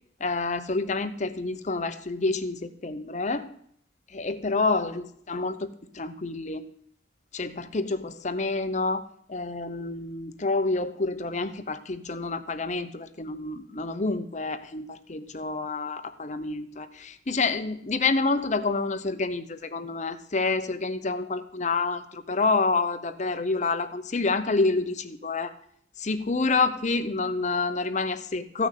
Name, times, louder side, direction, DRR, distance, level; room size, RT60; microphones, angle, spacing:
voice 1, 0.2-3.5 4.1-6.6 7.3-25.5 26.0-28.7, left 3 dB, 40° left, 10 dB, 0.8 m, -28 dB
14.5 x 6.1 x 8.4 m, 0.67 s
head